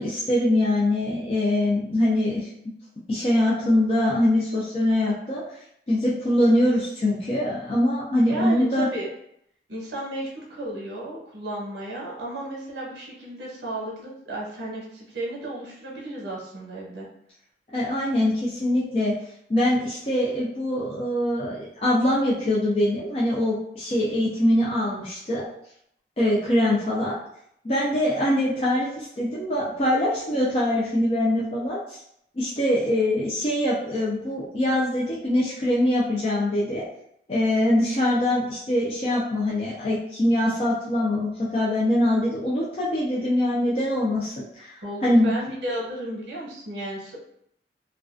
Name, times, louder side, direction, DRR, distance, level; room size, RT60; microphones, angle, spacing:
voice 1, 0.0-2.5 3.1-5.4 5.9-8.9 17.7-19.1 19.5-25.4 26.2-27.2 27.6-32.0 32.4-36.8 37.3-45.3, left 1 dB, 35° left, -6 dB, 0.4 m, -23 dB
voice 2, 8.3-9.1 9.7-17.1 44.8-47.2, right 1 dB, 85° right, -4 dB, 0.7 m, -33 dB
2.3 x 2.2 x 2.4 m, 0.72 s
head